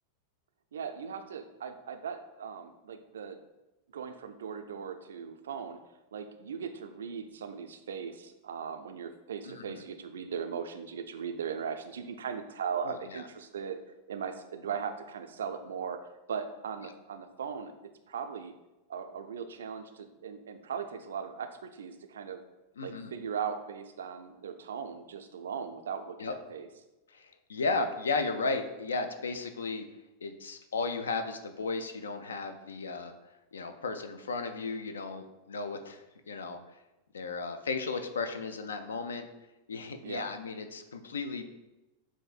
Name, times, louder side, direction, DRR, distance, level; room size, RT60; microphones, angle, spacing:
voice 1, 0.7-3.4 3.9-5.8 6.1-13.8 14.1-16.0 16.3-17.7 18.1-18.5 18.9-22.4 22.8-26.7 40.0-40.3, right 7 dB, 65° right, 8 dB, 0.3 m, -38 dB
voice 2, 9.4-9.8 12.8-13.2 22.8-23.1 26.2-26.3 27.1-29.9 30.2-33.1 33.5-36.6 37.1-39.3 39.7-41.5, left 3 dB, 70° left, 8 dB, 0.4 m, -35 dB
7.1 x 2.5 x 2.4 m, 1.0 s
figure-of-eight pair, 90°, 0 cm